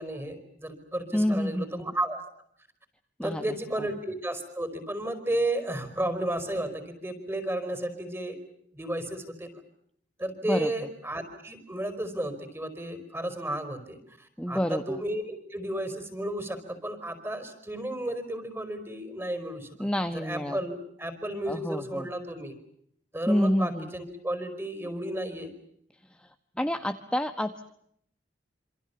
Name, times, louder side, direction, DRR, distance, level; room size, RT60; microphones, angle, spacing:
voice 1, 0.0-2.2 3.2-8.4 8.7-9.6 10.2-19.9 20.1-22.5 23.1-25.5, right 1 dB, 15° right, 10 dB, 5.0 m, -33 dB
voice 2, 1.1-1.8 3.2-3.4 3.8-3.9 10.5-10.7 14.4-15.0 19.8-20.6 21.5-22.1 23.3-23.9 26.2-26.3 26.6-27.7, equal, 5° left, 8 dB, 1.2 m, -28 dB
27.5 x 27.0 x 7.0 m, 0.71 s
head